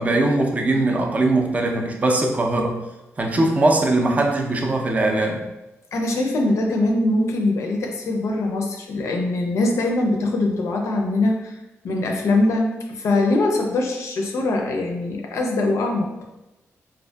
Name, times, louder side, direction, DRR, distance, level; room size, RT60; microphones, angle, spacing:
voice 1, 0.0-2.8 3.2-5.4, right 2 dB, 30° right, 1 dB, 0.4 m, -20 dB
voice 2, 5.9-11.5 11.8-16.1, left 2 dB, 70° left, 2 dB, 0.4 m, -22 dB
2.6 x 2.4 x 2.2 m, 0.98 s
cardioid pair, 100°, 5 cm